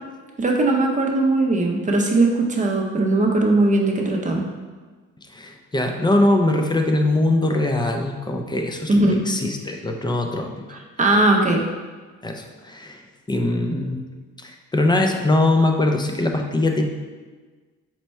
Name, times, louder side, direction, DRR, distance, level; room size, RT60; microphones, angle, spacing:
voice 1, 0.4-4.4 8.9-9.2 10.7-11.6, right 2 dB, 25° right, 0 dB, 0.6 m, -19 dB
voice 2, 5.3-10.8 12.2-13.0 13.3-14.0 14.4-16.8, left 2 dB, 15° left, 3 dB, 0.4 m, -22 dB
4.4 x 2.2 x 4.2 m, 1.4 s
cardioid pair, 90°, 30 cm